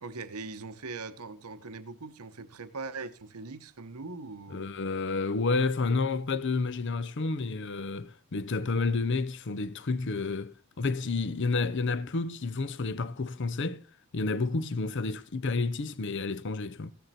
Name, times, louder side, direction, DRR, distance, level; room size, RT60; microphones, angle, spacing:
voice 1, 0.0-4.7, right 3 dB, 85° right, 1.0 m, -41 dB
voice 2, 4.5-13.8 14.1-16.9, left 3 dB, 55° left, 0.6 m, -30 dB
16.0 x 9.4 x 4.2 m
head